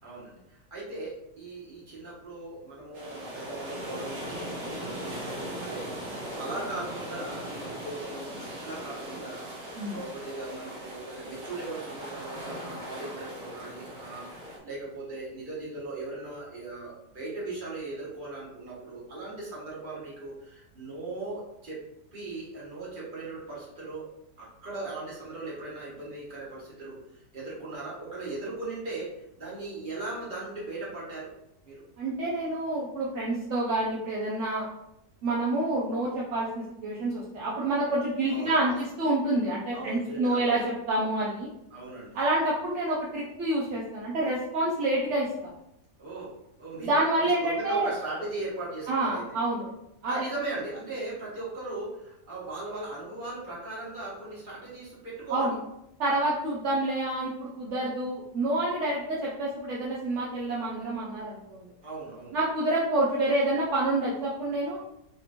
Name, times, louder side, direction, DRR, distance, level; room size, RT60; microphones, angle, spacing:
voice 1, 0.0-21.8 22.1-24.1 24.4-29.1 29.4-31.3 31.6-31.8 38.3-38.8 39.7-40.4 41.7-42.3 46.0-46.3 46.6-46.9 47.2-49.4 50.0-55.6 61.8-62.4, right 2 dB, 35° right, -7 dB, 1.3 m, -38 dB
sound 1, 2.9-14.6, equal, 80° right, 1.5 m, -39 dB
voice 2, 32.0-34.7 35.2-38.7 39.0-41.5 42.1-45.5 46.8-47.9 48.9-49.7 50.0-50.2 55.3-55.5 56.0-61.6 62.3-64.8, right 2 dB, 60° right, -5 dB, 0.8 m, -28 dB
4.2 x 2.9 x 2.5 m, 0.83 s
omnidirectional pair, 1.8 m